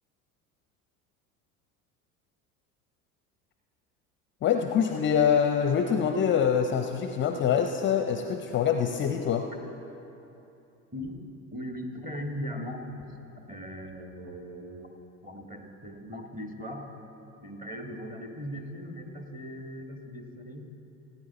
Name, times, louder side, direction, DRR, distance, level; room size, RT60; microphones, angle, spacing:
voice 1, 4.4-9.5, left 7 dB, 25° left, 6 dB, 0.6 m, -25 dB
voice 2, 11.5-13.1 13.5-14.9 15.2-16.9 17.4-20.7, equal, 20° right, 3 dB, 1.7 m, -39 dB
18.0 x 9.5 x 4.2 m, 2.9 s
figure-of-eight pair, 70°, 44 cm